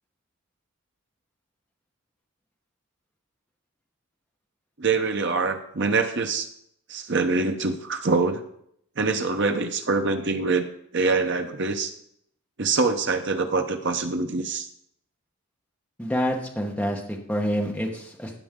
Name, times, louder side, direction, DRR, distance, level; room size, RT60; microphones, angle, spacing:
voice 1, 4.8-6.5 6.9-8.4 9.0-10.7 10.9-11.9 12.6-14.7, right 3 dB, 50° right, 6 dB, 0.9 m, -24 dB
voice 2, 16.0-18.3, equal, 5° left, 0 dB, 1.2 m, -27 dB
15.0 x 6.0 x 3.8 m, 0.71 s
head